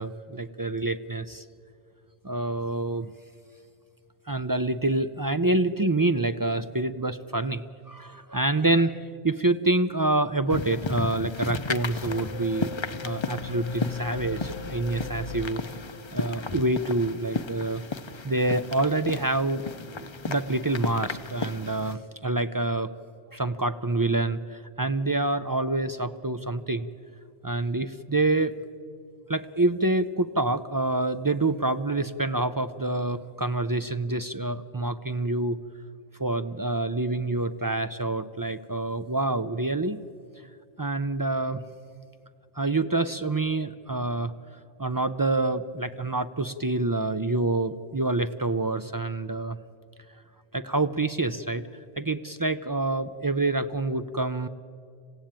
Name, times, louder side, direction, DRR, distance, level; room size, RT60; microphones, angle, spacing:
voice 1, 0.0-1.4 2.2-3.1 4.3-12.7 13.0-15.6 16.1-17.8 18.2-22.9 23.3-26.9 27.4-28.5 29.3-35.6 36.2-40.0 40.8-41.6 42.6-44.3 44.8-49.6 50.5-51.6 52.0-54.5, right 2 dB, 35° right, 11 dB, 0.3 m, -27 dB
sound 1, 10.5-21.9, left 4 dB, 30° left, 0.6 m, -34 dB
sound 2, 12.0-16.6, left 5 dB, 70° left, 1.1 m, -38 dB
26.5 x 16.0 x 8.9 m, 2.3 s
omnidirectional pair, 1.2 m